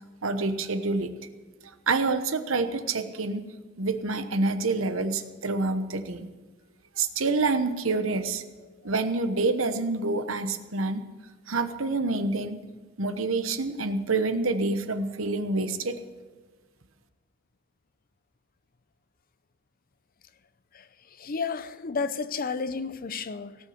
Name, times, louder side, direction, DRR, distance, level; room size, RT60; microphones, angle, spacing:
voice 1, 0.2-1.1 1.9-3.4 3.8-6.3 7.0-8.4 8.8-11.0 11.5-12.6 13.0-16.0, right 3 dB, 70° right, 1.0 m, -27 dB
voice 2, 21.2-23.6, left 5 dB, 45° left, 0.6 m, -31 dB
18.0 x 6.3 x 9.4 m
head